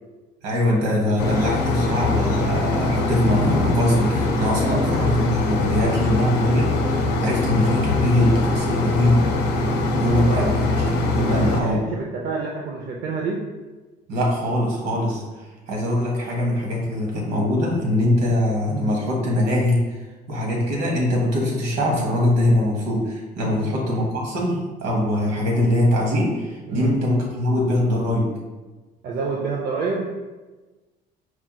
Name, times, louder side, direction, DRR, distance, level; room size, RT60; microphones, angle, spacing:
voice 1, 0.4-9.3 9.9-11.8 14.1-20.0 20.3-28.3, left 1 dB, 90° right, -2 dB, 1.0 m, -22 dB
sound 1, 1.2-11.6, left 2 dB, 80° left, 0.5 m, -22 dB
voice 2, 10.1-10.5 11.3-13.5 23.4-23.7 26.7-27.0 29.0-30.1, right 4 dB, 65° right, -1 dB, 0.5 m, -28 dB
4.3 x 2.8 x 2.2 m, 1.2 s
cardioid pair, 110°, 17 cm